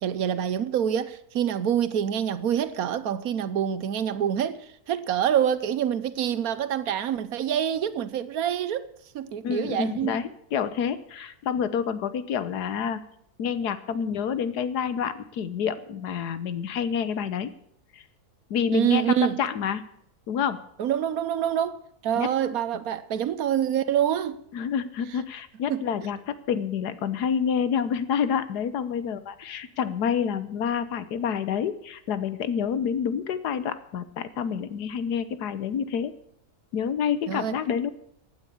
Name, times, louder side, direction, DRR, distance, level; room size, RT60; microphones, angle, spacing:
voice 1, 0.0-8.9 9.1-10.2 18.7-19.4 20.8-24.4 25.7-25.8 37.3-37.6, right 9 dB, 70° right, 1.2 m, -26 dB
voice 2, 9.4-13.0 13.4-17.5 18.5-19.8 20.3-20.6 22.2-22.3 24.5-36.1 36.7-37.9, left 7 dB, 90° left, 1.5 m, -28 dB
15.5 x 9.0 x 7.0 m
omnidirectional pair, 1.7 m